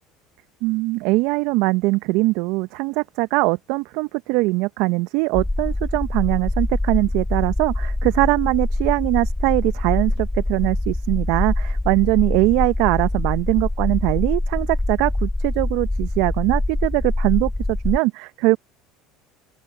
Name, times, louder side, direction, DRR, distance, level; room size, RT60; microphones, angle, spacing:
voice 1, 0.6-18.6, right 23 dB, 65° right, 1.0 m, -21 dB
sound 1, 5.3-18.0, left 1 dB, 10° left, 4.7 m, -24 dB
open air
hypercardioid pair, 70°, 0 cm